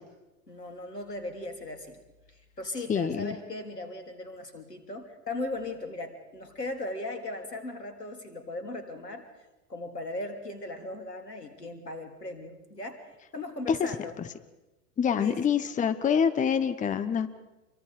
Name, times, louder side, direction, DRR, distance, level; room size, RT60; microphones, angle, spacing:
voice 1, 0.5-2.0 2.3-9.2 9.7-13.0 13.3-14.2 15.1-15.4, left 2 dB, 85° left, 6 dB, 3.2 m, -38 dB
voice 2, 2.9-3.3 13.7-13.8 14.2-14.3 15.0-17.3, left 7 dB, 15° left, 12 dB, 1.1 m, -26 dB
28.0 x 23.0 x 5.0 m, 1.0 s
figure-of-eight pair, 90°, 47 cm